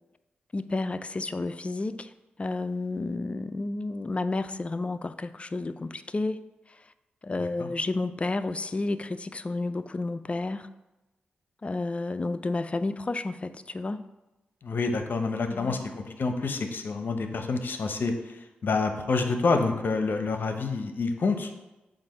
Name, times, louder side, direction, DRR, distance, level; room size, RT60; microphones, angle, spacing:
voice 1, 0.5-2.1 2.4-6.4 6.7-6.8 7.2-10.7 11.6-14.0 15.5-15.8 20.0-20.1, left 2 dB, 35° left, 12 dB, 0.4 m, -31 dB
voice 2, 14.6-15.8 16.1-21.5, left 4 dB, 65° left, 6 dB, 0.7 m, -28 dB
7.5 x 2.5 x 5.6 m, 1.0 s
cardioid pair, 50°, 4 cm